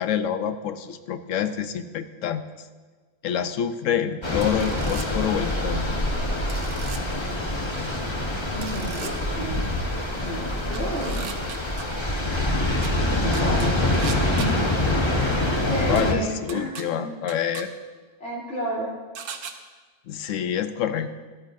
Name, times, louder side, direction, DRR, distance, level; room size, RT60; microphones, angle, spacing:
voice 1, 0.0-2.4 3.2-5.9 15.6-17.7 20.1-21.1, left 9 dB, 85° left, 10 dB, 1.0 m, -27 dB
sound 1, 4.2-16.1, left 1 dB, 25° left, 1.0 m, -25 dB
sound 2, 4.4-5.1 6.5-7.0 8.6-9.1 10.7-11.8 12.8-12.9 13.3-14.5 16.0-16.1 16.5-16.8 17.3-17.6 19.1-19.5, right 7 dB, 85° right, 1.1 m, -38 dB
voice 2, 8.5-9.6 10.1-11.2 13.1-14.6 15.5-17.0 18.2-18.9, right 1 dB, 65° left, -7 dB, 3.5 m, -31 dB
13.5 x 11.0 x 2.6 m, 1.4 s
omnidirectional pair, 1.3 m